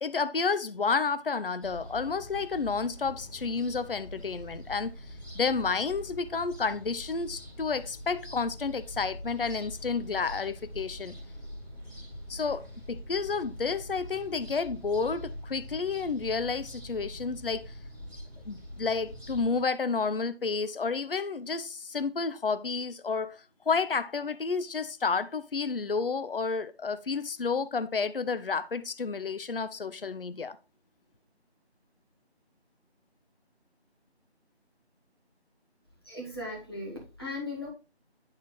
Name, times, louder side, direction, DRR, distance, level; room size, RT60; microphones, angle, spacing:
voice 1, 0.0-4.9 5.3-11.2 12.3-17.7 18.5-30.6, left 4 dB, 55° left, 0.5 m, -30 dB
sound 1, 1.6-19.6, equal, 10° right, 2.3 m, -44 dB
voice 2, 36.0-37.7, left 2 dB, 20° left, 1.6 m, -37 dB
10.5 x 4.2 x 3.2 m
figure-of-eight pair, 170°, 33 cm